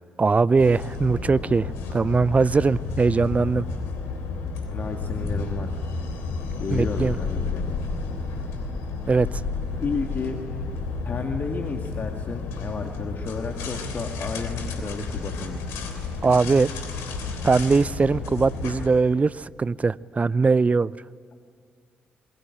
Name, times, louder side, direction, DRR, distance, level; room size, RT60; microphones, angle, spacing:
voice 1, 0.2-3.7 6.7-7.2 9.1-9.4 16.2-16.7 17.4-20.9, right 4 dB, 30° right, 0.6 m, -21 dB
sound 1, 0.5-18.9, left 4 dB, 75° left, 3.2 m, -31 dB
voice 2, 4.7-5.7 6.6-7.6 9.8-10.5 11.0-15.6, left 4 dB, 45° left, 2.1 m, -32 dB
25.5 x 22.0 x 8.9 m
hypercardioid pair, 40°, 5 cm